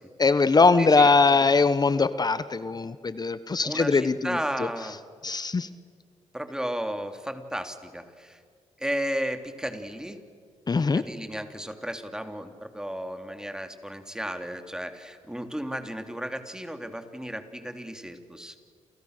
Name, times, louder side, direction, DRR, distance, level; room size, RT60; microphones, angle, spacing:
voice 1, 0.2-4.7 5.2-5.7 10.7-11.0, left 4 dB, 35° left, 14 dB, 1.0 m, -21 dB
voice 2, 0.8-1.1 3.6-5.0 6.3-8.4 8.8-10.2 10.9-18.5, equal, 5° right, 6 dB, 3.1 m, -34 dB
29.5 x 29.0 x 6.7 m, 2.1 s
cardioid pair, 75°, 12 cm